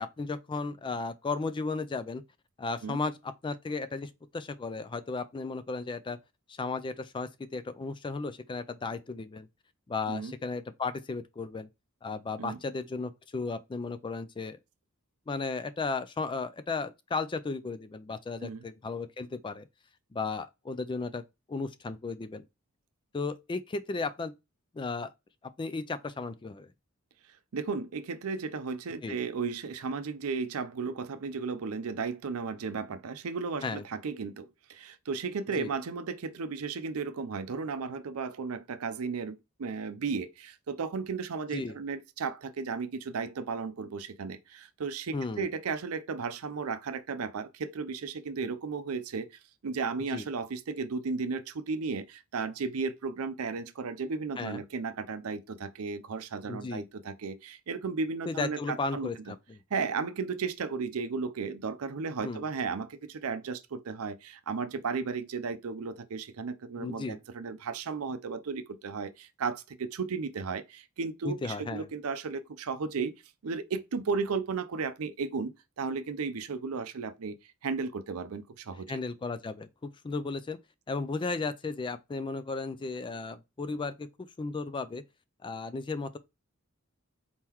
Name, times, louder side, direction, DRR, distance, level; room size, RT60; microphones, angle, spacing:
voice 1, 0.0-2.2 2.6-6.2 6.5-9.5 9.9-11.7 12.0-14.6 15.3-19.7 20.1-21.2 21.5-22.4 23.1-24.3 24.7-25.1 25.6-26.7 29.0-29.2 33.6-33.8 35.6-35.7 41.5-41.7 45.1-45.5 50.1-50.2 54.4-54.6 56.4-56.8 58.3-59.6 62.2-62.5 66.8-67.2 71.2-71.9 78.9-80.6 80.9-84.1 84.4-85.0 85.4-86.2, left 3 dB, 20° left, 0.3 m, -35 dB
voice 2, 27.5-59.3 59.7-73.1 73.4-77.3 77.6-79.0, right 5 dB, 80° right, 0.5 m, -34 dB
4.3 x 3.7 x 2.9 m
head